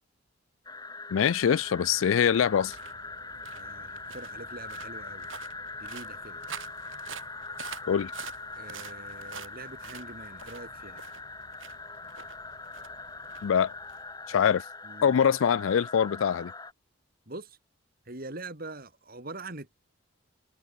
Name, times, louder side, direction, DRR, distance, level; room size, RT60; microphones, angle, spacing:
sound 1, 0.6-16.7, left 3 dB, 20° left, 3.9 m, -42 dB
voice 1, 1.1-2.7 7.9-8.1 13.4-13.7 14.3-14.6 15.0-16.5, left 7 dB, 80° left, 0.4 m, -24 dB
sound 2, 1.3-14.6, right 7 dB, 75° right, 1.7 m, -48 dB
voice 2, 3.5-5.3 5.8-6.4 8.6-11.0 14.8-15.2 17.3-17.6 18.1-19.7, right 2 dB, 50° right, 4.0 m, -43 dB
head